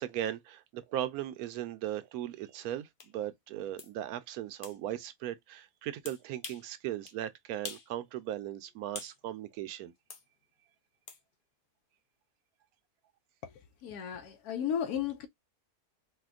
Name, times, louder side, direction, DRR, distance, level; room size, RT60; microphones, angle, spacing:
voice 1, 0.0-9.9, right 12 dB, 80° right, 1.0 m, -38 dB
sound 1, 3.0-3.1 3.8-3.9 4.6-4.8 6.1-6.7 7.1-7.2 7.6-7.9 8.3-9.2 10.1-10.3 11.1-11.2, left 5 dB, 50° left, 0.7 m, -45 dB
voice 2, 13.8-15.3, left 8 dB, 85° left, 1.2 m, -34 dB
4.2 x 2.2 x 2.3 m
omnidirectional pair, 1.6 m